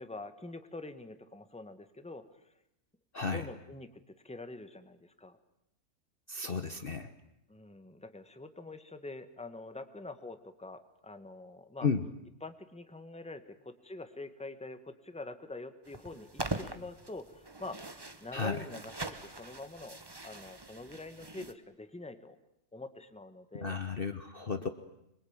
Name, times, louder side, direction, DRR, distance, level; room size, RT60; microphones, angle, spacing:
voice 1, 0.0-2.5 3.3-5.4 7.5-11.9 12.4-17.8 18.2-20.0 20.2-22.4 22.7-23.8, left 2 dB, 5° left, 10 dB, 1.5 m, -45 dB
voice 2, 3.1-3.4 6.3-7.1 11.8-12.0 18.3-18.6 23.6-24.7, left 5 dB, 40° left, 8 dB, 1.2 m, -33 dB
sound 1, 15.9-21.5, right 2 dB, 15° right, 1.2 m, -42 dB
26.0 x 22.5 x 8.9 m, 0.83 s
omnidirectional pair, 1.6 m